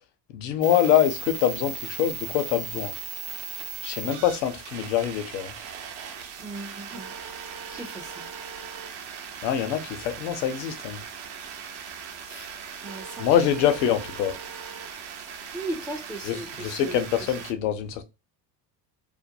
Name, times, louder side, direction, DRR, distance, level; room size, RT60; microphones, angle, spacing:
voice 1, 0.3-2.9 3.8-5.5 9.4-11.0 13.2-14.4 16.2-18.1, left 10 dB, 80° left, 0.7 m, -25 dB
sound 1, 0.6-17.5, right 6 dB, 70° right, 0.8 m, -38 dB
voice 2, 6.4-7.2 7.7-8.3 12.3-13.3 13.6-13.7 15.5-17.0, right 1 dB, 5° right, 0.4 m, -37 dB
2.5 x 2.1 x 2.6 m
hypercardioid pair, 70°, 50 cm